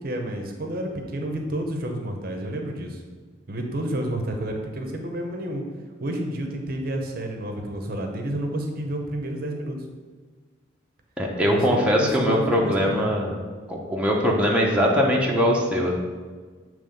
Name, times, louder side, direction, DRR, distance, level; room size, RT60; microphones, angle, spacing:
voice 1, 0.0-3.0 3.5-5.6 6.0-9.8 11.4-13.1, right 1 dB, 50° right, 3 dB, 0.7 m, -30 dB
voice 2, 11.2-13.4 13.7-15.9, equal, 5° right, -3 dB, 0.8 m, -21 dB
7.3 x 3.1 x 5.1 m, 1.5 s
head